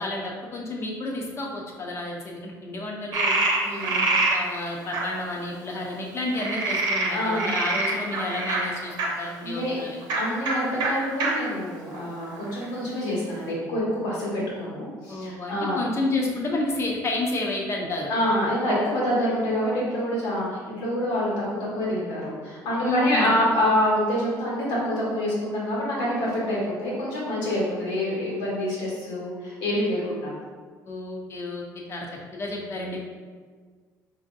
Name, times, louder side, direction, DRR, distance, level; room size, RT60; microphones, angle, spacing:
voice 1, 0.0-3.4 3.8-10.0 15.1-18.1 22.8-23.5 30.9-32.1 32.3-33.1, left 2 dB, 35° left, -1 dB, 0.8 m, -30 dB
Frog, 3.1-4.4 4.9-5.0 6.3-9.1 10.0-10.2 10.4-10.5 10.8-10.9 11.2-11.3 11.9-12.6, right 3 dB, 70° right, 0.8 m, -25 dB
voice 2, 3.6-4.0 7.1-7.5 9.2-9.8 10.2-15.8 18.1-30.3, left 1 dB, 85° left, -6 dB, 1.4 m, -26 dB
4.2 x 2.7 x 2.6 m, 1.5 s
cardioid pair, 100°, 7 cm